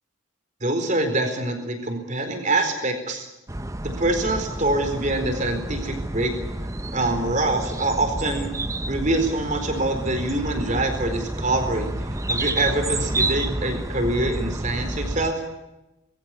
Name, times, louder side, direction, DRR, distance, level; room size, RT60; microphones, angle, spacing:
voice 1, 0.6-3.3 3.8-6.3 6.9-8.5 8.9-11.9 12.3-15.4, right 2 dB, 35° right, 6 dB, 4.3 m, -25 dB
sound 1, 3.5-15.3, right 2 dB, 15° right, 0.8 m, -29 dB
21.5 x 16.0 x 9.9 m, 0.97 s
head